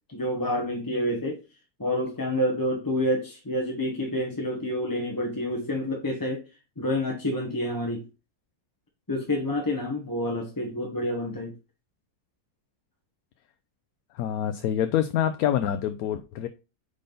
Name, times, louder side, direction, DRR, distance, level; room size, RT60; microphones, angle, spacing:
voice 1, 0.1-1.4 1.8-6.4 6.8-8.1 9.1-11.5, left 1 dB, 15° left, 0.9 m, -28 dB
voice 2, 14.1-16.5, left 10 dB, 70° left, 1.0 m, -26 dB
6.7 x 5.2 x 3.9 m
omnidirectional pair, 1.7 m